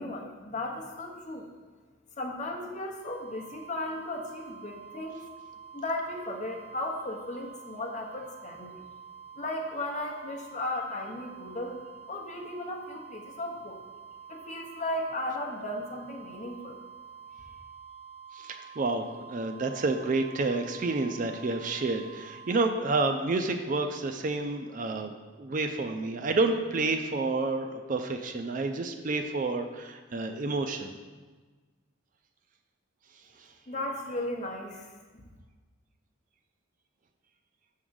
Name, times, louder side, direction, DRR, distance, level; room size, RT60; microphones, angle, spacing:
voice 1, 0.0-1.5 2.2-5.2 5.7-8.8 9.4-11.8 12.1-13.8 14.3-16.8 33.7-35.2, left 1 dB, 35° left, 1 dB, 0.9 m, -36 dB
sound 1, 3.0-22.5, right 7 dB, ahead, 1.3 m, -48 dB
voice 2, 18.3-31.0, right 3 dB, 40° right, 6 dB, 0.4 m, -29 dB
6.9 x 3.7 x 6.3 m, 1.4 s
head